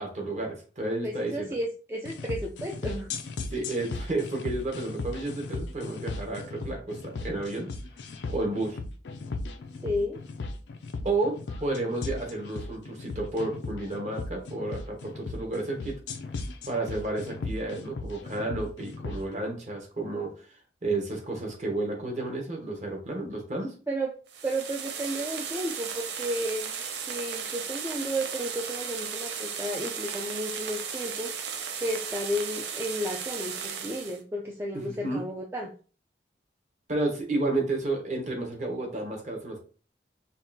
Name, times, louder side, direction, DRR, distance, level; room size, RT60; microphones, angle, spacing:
voice 1, 0.0-1.6 3.5-7.7 8.3-8.8 11.0-16.0 16.7-23.7 34.7-35.2 36.9-39.6, right 2 dB, 40° right, 1 dB, 1.0 m, -31 dB
voice 2, 1.0-3.1 9.8-10.2 23.9-24.1 24.4-31.3 31.8-35.7, equal, 15° right, -1 dB, 0.3 m, -33 dB
sound 1, 2.0-19.2, left 3 dB, 90° left, 0.4 m, -37 dB
sound 2, 24.3-34.2, right 7 dB, 85° right, 0.5 m, -35 dB
5.2 x 2.3 x 2.6 m, 0.38 s
head